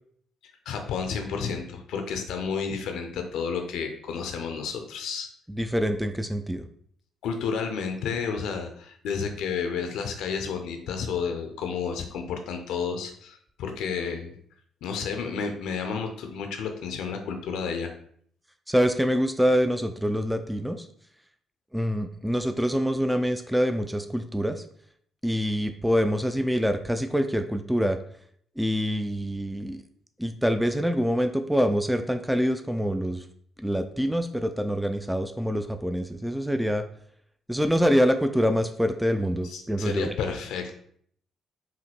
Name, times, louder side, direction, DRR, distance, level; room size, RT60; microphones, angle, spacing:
voice 1, 0.7-5.3 7.2-14.4 14.8-17.9 39.4-40.7, left 6 dB, 65° left, 5 dB, 0.5 m, -31 dB
voice 2, 5.5-6.7 18.7-20.9 21.7-24.6 25.2-28.0 28.6-29.8 30.2-33.2 33.6-36.8 37.5-40.1, equal, 5° right, 7 dB, 0.4 m, -25 dB
4.9 x 2.7 x 3.2 m, 0.62 s
figure-of-eight pair, 45°, 0 cm